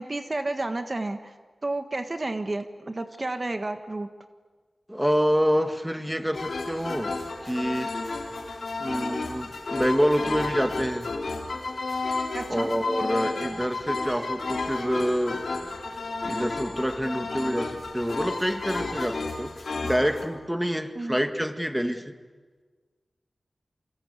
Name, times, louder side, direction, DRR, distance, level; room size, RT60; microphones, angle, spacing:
voice 1, 0.0-1.3 1.6-4.1 12.3-12.7 20.9-21.2, right 2 dB, 45° right, 7 dB, 1.6 m, -31 dB
voice 2, 4.9-7.2 7.4-7.9 8.8-11.1 12.5-15.4 16.2-19.6 19.8-22.1, equal, 5° right, 7 dB, 1.9 m, -27 dB
sound 1, 6.3-20.2, left 3 dB, 90° left, 3.8 m, -32 dB
27.5 x 25.0 x 8.3 m, 1.4 s
wide cardioid pair, 55°, 0 cm